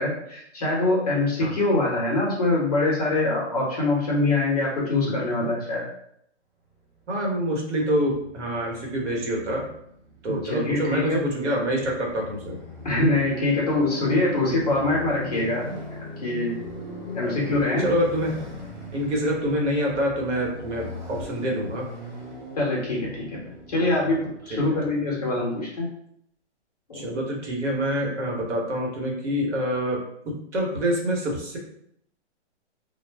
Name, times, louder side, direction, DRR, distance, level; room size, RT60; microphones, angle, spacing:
voice 1, 0.0-5.8 10.4-11.2 12.8-15.7 16.0-16.6 17.1-17.9 22.6-23.4 23.7-25.9 26.9-27.0, left 2 dB, 35° left, -4 dB, 0.7 m, -24 dB
Motorcycle, 7.0-25.2, left 1 dB, 40° right, 0.6 m, -40 dB
voice 2, 7.1-9.7 10.2-12.6 17.2-17.3 17.8-18.4 18.9-21.8 24.5-24.6 26.9-31.6, equal, 75° right, -1 dB, 1.1 m, -26 dB
2.2 x 2.0 x 3.2 m, 0.71 s
hypercardioid pair, 180°, 35 cm